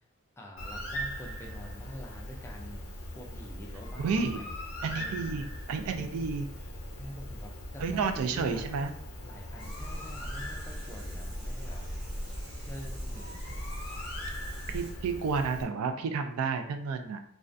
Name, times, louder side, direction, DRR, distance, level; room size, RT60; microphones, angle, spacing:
voice 1, 0.4-2.9 3.1-4.6 5.0-5.4 5.9-6.3 7.0-8.6 9.2-11.8 12.6-13.4, equal, 10° left, -1 dB, 0.3 m, -46 dB
Bird, 0.6-15.6, left 1 dB, 80° left, 0.6 m, -41 dB
voice 2, 4.0-4.4 4.8-6.5 7.8-8.9 14.7-17.2, right 5 dB, 85° right, 8 dB, 0.3 m, -31 dB
sound 1, 9.6-14.9, equal, 50° right, 0.7 m, -40 dB
2.3 x 2.1 x 2.5 m, 0.66 s
head